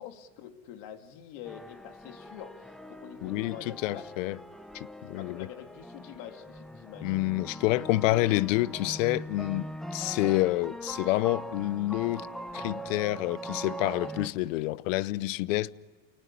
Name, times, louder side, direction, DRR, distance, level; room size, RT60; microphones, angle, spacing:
voice 1, 0.0-4.1 5.1-7.3, left 10 dB, 60° left, 2.5 m, -46 dB
sound 1, 1.4-14.3, equal, ahead, 1.0 m, -41 dB
voice 2, 3.2-3.6 3.8-4.4 4.7-5.5 7.0-12.3 12.5-15.7, left 18 dB, 90° left, 0.9 m, -28 dB
28.5 x 19.0 x 9.9 m
cardioid pair, 160°, 37 cm